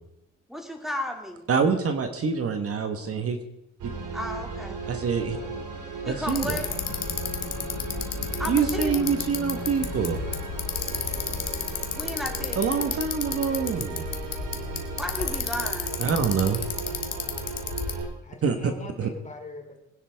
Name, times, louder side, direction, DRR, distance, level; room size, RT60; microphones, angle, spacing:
voice 1, 0.5-1.5 4.1-4.8 6.0-6.7 8.4-9.0 11.9-12.9 15.0-16.0, left 1 dB, ahead, 2 dB, 2.6 m, -34 dB
voice 2, 1.5-3.4 4.9-5.4 6.0-6.6 8.5-10.2 12.6-14.1 16.0-16.6 18.4-18.7 19.0-19.1, right 6 dB, 50° right, 7 dB, 1.4 m, -25 dB
voice 3, 2.6-3.1 5.3-5.5 18.2-19.8, left 3 dB, 25° left, 3 dB, 3.0 m, -43 dB
sound 1, 3.8-18.1, right 4 dB, 80° right, 3.0 m, -36 dB
Bicycle, 6.3-18.0, left 7 dB, 55° left, 1.7 m, -32 dB
22.0 x 10.0 x 3.6 m, 0.85 s
cardioid pair, 90°, 30 cm